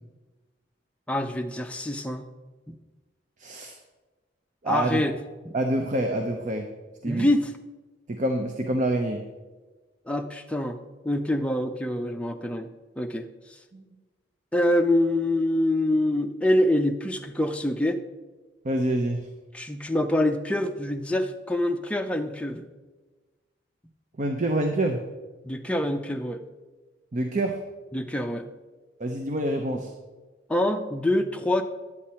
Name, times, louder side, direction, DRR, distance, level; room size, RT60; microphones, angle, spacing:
voice 1, 1.1-2.2 2.7-2.8 4.7-5.2 5.5-5.6 7.1-7.5 10.1-10.8 11.0-12.7 13.0-13.3 14.5-18.0 19.5-22.6 25.4-26.4 27.9-28.4 30.5-31.6, left 1 dB, 5° left, 4 dB, 0.5 m, -25 dB
voice 2, 3.4-3.7 4.6-5.0 5.5-6.7 7.0-7.3 8.1-9.2 13.7-13.8 18.6-19.2 24.2-25.0 27.1-27.6 29.0-29.9, right 1 dB, 40° right, 4 dB, 0.7 m, -26 dB
10.0 x 8.5 x 4.4 m, 1.3 s
head